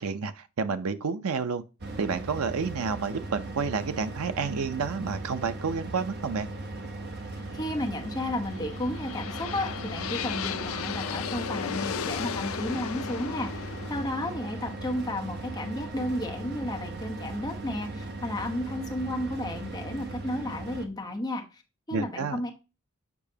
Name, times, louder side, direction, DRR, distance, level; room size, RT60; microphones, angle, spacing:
voice 1, 0.0-1.6 2.0-6.5 21.9-22.4, right 5 dB, 85° right, 0.6 m, -30 dB
sound 1, 1.8-20.9, right 2 dB, 50° right, 1.0 m, -38 dB
voice 2, 7.5-21.6 21.9-22.5, left 1 dB, 20° left, 1.0 m, -33 dB
sound 2, 8.4-16.3, left 7 dB, 75° left, 0.5 m, -36 dB
7.0 x 4.8 x 2.8 m
head